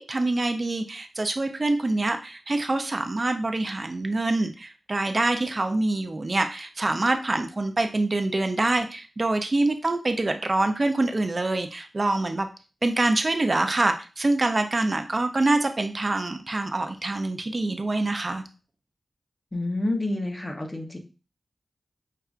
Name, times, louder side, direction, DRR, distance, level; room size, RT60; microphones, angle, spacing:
voice 1, 0.0-12.5 12.8-18.4, right 2 dB, 40° right, 6 dB, 0.4 m, -25 dB
voice 2, 19.5-21.0, left 2 dB, 30° left, 3 dB, 0.7 m, -28 dB
5.5 x 2.3 x 2.4 m, 0.33 s
wide cardioid pair, 80°, 0 cm